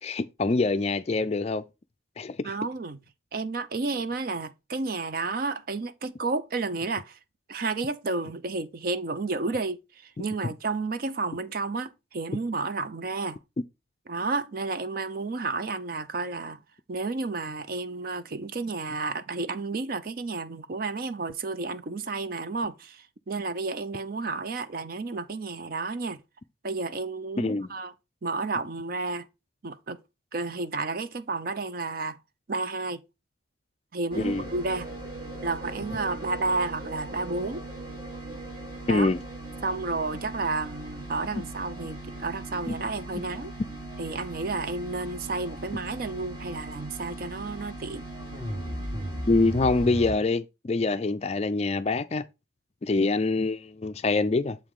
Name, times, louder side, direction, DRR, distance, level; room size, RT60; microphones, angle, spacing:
voice 1, 0.0-1.6 2.2-2.5 27.4-27.7 34.2-34.4 38.9-39.2 41.4-41.5 42.7-42.8 49.3-52.2 52.8-54.6, left 3 dB, 30° left, 0.4 m, -25 dB
voice 2, 2.4-3.0 3.3-7.2 7.5-13.4 14.1-16.6 16.9-26.2 26.6-27.9 28.2-29.3 29.6-30.0 30.3-32.2 32.5-33.0 33.9-34.9 35.4-37.6 38.9-39.1 39.6-43.5 44.0-48.1, right 3 dB, 45° right, 0.5 m, -31 dB
sound 1, 34.1-50.1, right 1 dB, 25° right, 1.4 m, -38 dB
7.3 x 4.9 x 3.7 m
head